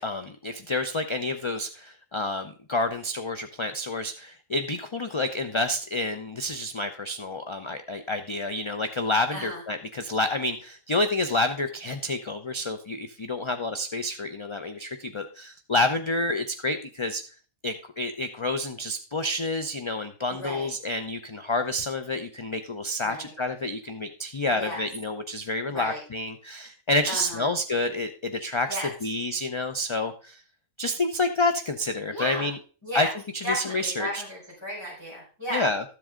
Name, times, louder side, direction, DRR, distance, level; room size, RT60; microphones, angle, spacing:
voice 1, 0.0-17.2 17.6-30.4 30.8-32.6 32.9-33.1 33.3-34.2 35.5-35.8, left 2 dB, 35° left, 8 dB, 0.5 m, -29 dB
voice 2, 20.3-20.7 23.0-23.3 24.6-24.8 25.7-26.0 27.1-27.5 28.7-28.9 32.1-32.5 32.8-33.1 33.4-35.7, equal, 20° left, -6 dB, 4.5 m, -33 dB
13.5 x 7.7 x 3.7 m, 0.38 s
omnidirectional pair, 1.4 m